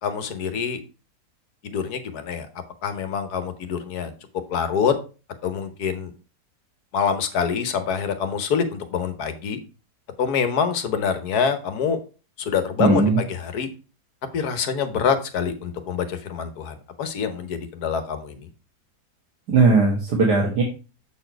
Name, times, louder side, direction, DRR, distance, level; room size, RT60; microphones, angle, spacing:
voice 1, 0.0-0.8 1.6-2.5 2.8-4.1 4.5-4.9 5.4-6.1 6.9-9.6 10.2-12.0 12.4-13.7 14.3-18.5, left 6 dB, 70° left, 10 dB, 1.4 m, -25 dB
voice 2, 12.8-13.2 19.5-20.6, right 3 dB, 75° right, -1 dB, 1.9 m, -18 dB
7.8 x 4.4 x 4.5 m, 0.34 s
omnidirectional pair, 1.7 m